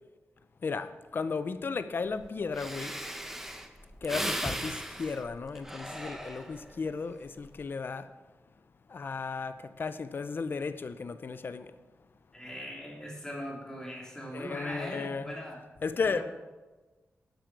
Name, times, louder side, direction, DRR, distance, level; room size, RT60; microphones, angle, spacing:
voice 1, 0.6-3.0 4.0-8.1 8.9-11.7 14.3-15.3 15.8-16.2, left 4 dB, 50° left, 0.6 m, -34 dB
Breathing, 2.2-2.3 2.5-6.8 7.3-7.6, right 1 dB, 5° right, 0.8 m, -37 dB
voice 2, 12.3-15.6 16.0-16.2, equal, 15° left, 2.8 m, -40 dB
11.5 x 7.8 x 4.7 m
wide cardioid pair, 125°, 5 cm